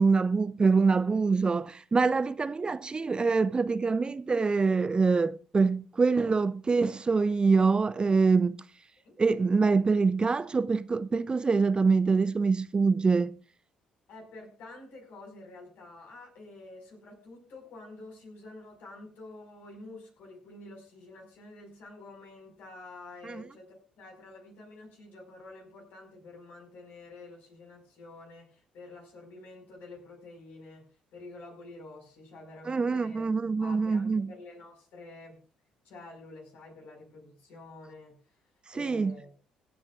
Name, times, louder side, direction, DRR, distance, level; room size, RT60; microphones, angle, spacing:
voice 1, 0.0-8.6 9.2-13.3 23.2-23.4 32.7-34.3 38.8-39.1, right 4 dB, 25° right, 0.5 m, -25 dB
voice 2, 14.1-30.9 31.1-33.3 33.6-35.4 35.8-38.4 38.7-39.3, left 2 dB, 60° left, 5.2 m, -48 dB
25.5 x 8.8 x 2.5 m
figure-of-eight pair, 45°, 3 cm